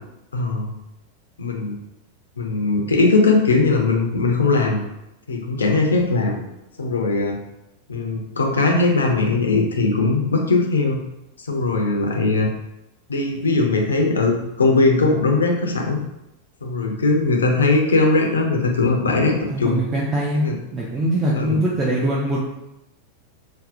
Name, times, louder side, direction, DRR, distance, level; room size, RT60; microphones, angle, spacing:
voice 1, 0.3-0.7 1.4-1.8 2.4-4.8 5.3-6.4 6.8-7.4 7.9-11.0 11.5-12.5 13.1-16.0 16.6-19.8 20.3-20.6 21.3-21.6, left 3 dB, 70° left, 1 dB, 0.4 m, -19 dB
voice 2, 19.5-22.4, right 1 dB, 20° right, -5 dB, 0.4 m, -22 dB
2.6 x 2.0 x 2.4 m, 0.89 s
figure-of-eight pair, 90°, 0 cm